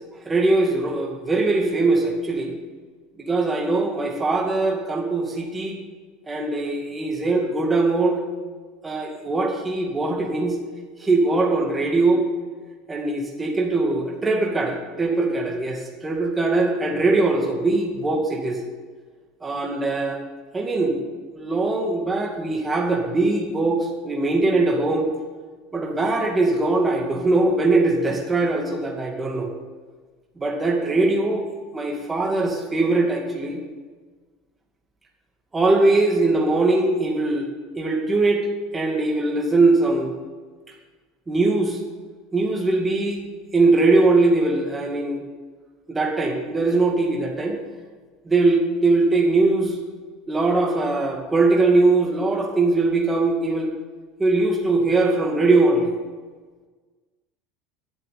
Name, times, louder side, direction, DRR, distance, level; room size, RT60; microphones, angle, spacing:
voice 1, 0.3-2.5 3.3-5.8 6.3-8.2 8.8-10.5 11.0-12.2 12.9-18.6 19.4-20.2 20.5-21.0 21.3-25.1 25.7-29.5 30.4-31.5 31.7-33.6 35.5-37.5 37.7-38.5 38.7-40.1 41.3-41.8 42.3-43.2 43.5-45.2 45.9-47.6 48.3-49.8 50.3-53.7 54.2-55.9, right 2 dB, 15° right, 1 dB, 2.3 m, -21 dB
11.0 x 7.8 x 8.6 m, 1.4 s
supercardioid pair, 130°, 0 cm